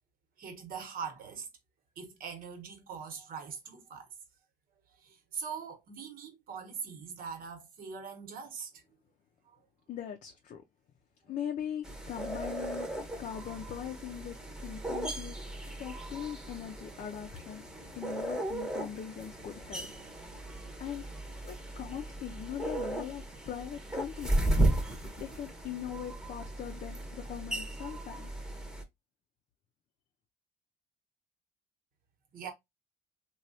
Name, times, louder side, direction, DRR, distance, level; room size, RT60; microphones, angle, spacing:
voice 1, 0.4-1.5 2.0-4.1 4.9-8.8 9.4-9.6 32.3-32.5, right 6 dB, 55° right, 1.1 m, -42 dB
voice 2, 9.9-10.6 11.3-12.9 13.2-15.4 15.8-17.6 17.9-19.9 20.8-21.1 21.4-24.5 25.2-28.3, left 9 dB, 45° left, 0.5 m, -40 dB
sound 1, 11.8-28.8, right 1 dB, 5° right, 0.9 m, -36 dB
3.1 x 2.3 x 2.6 m
cardioid pair, 110°, 17 cm